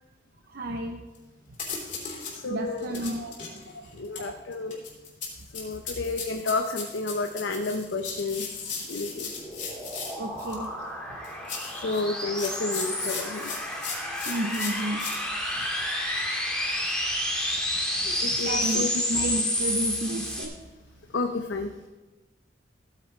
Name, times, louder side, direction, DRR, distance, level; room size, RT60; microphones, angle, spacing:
voice 1, 0.5-1.0 2.4-3.6 10.2-10.7 14.3-15.1 15.6-15.7 18.3-20.6, right 1 dB, 55° right, 3 dB, 0.7 m, -32 dB
sound 1, 1.1-1.2 1.5-2.4 2.8-10.6 11.2-15.2, left 5 dB, 45° left, 3.1 m, -37 dB
voice 2, 2.4-2.9 4.0-4.8 5.5-9.3 11.7-13.5 18.1-18.9 21.1-21.7, left 3 dB, 75° left, 5 dB, 0.6 m, -31 dB
sound 2, 8.6-20.4, left 1 dB, 5° left, 1.8 m, -30 dB
15.0 x 9.2 x 3.2 m, 1.2 s
head